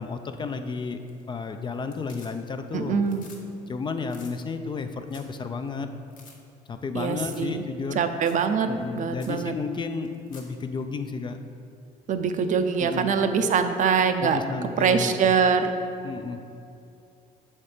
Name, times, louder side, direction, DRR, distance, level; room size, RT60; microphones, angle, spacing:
voice 1, 0.0-3.0 3.7-5.9 6.7-8.0 8.7-11.4 12.8-13.1 14.2-15.3 16.0-16.4, left 4 dB, 30° left, 8 dB, 0.4 m, -32 dB
sound 1, 1.0-1.4 1.7-2.7 3.0-3.4 3.7-3.8 4.1-4.3 4.8-4.9 5.1-5.4 5.7-5.8 6.1-6.4 7.2-7.5 7.8-7.9 8.2-8.5 8.8-8.9 9.2-9.4 10.0-10.6 12.7-12.8, left 4 dB, 50° left, 1.4 m, -50 dB
voice 2, 2.7-3.3 6.9-7.6 8.0-8.7 9.0-9.5 12.1-14.4 14.8-15.7, right 6 dB, 50° right, 8 dB, 0.5 m, -23 dB
7.0 x 4.3 x 5.0 m, 2.6 s
cardioid pair, 110°, 17 cm